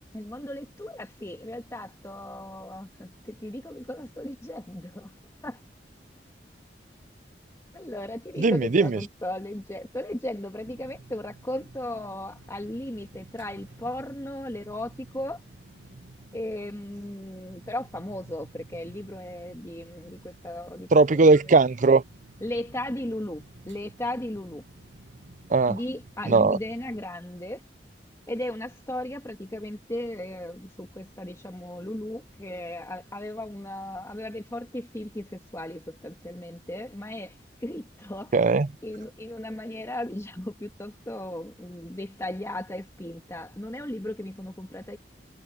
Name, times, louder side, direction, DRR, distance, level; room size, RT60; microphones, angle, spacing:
voice 1, 0.0-5.1 5.4-5.6 7.7-15.4 16.3-21.2 22.4-24.6 25.7-27.6 28.3-37.3 37.6-38.3 38.8-45.0, left 1 dB, 15° left, 2.0 m, -36 dB
voice 2, 8.4-9.0 20.9-22.0 25.5-25.8 26.3-26.6 38.3-38.7, right 3 dB, 45° right, 0.5 m, -19 dB
sound 1, 10.6-27.0, right 2 dB, 90° right, 1.4 m, -52 dB
head